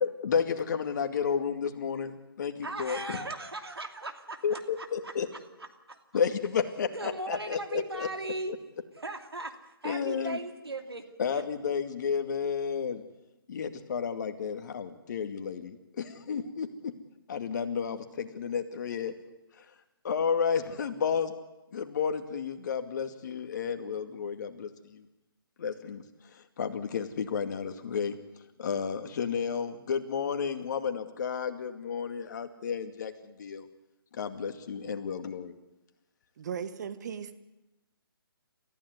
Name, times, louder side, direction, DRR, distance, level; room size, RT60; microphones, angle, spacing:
voice 1, 0.0-3.2 4.4-5.3 6.1-8.6 9.8-10.4 11.2-13.0 13.5-16.9 17.3-19.1 20.0-21.3 21.7-25.1 25.6-26.0 26.6-28.2 28.6-33.7 34.1-35.5, left 6 dB, 50° left, 7 dB, 2.3 m, -32 dB
voice 2, 2.6-5.3 5.6-6.0 6.9-8.5 9.0-9.5 9.8-11.1 11.3-11.4, right 2 dB, 85° right, 6 dB, 2.9 m, -38 dB
voice 3, 36.4-37.4, right 7 dB, 45° right, 11 dB, 1.5 m, -37 dB
28.0 x 15.0 x 9.4 m, 1.0 s
figure-of-eight pair, 140°, 13 cm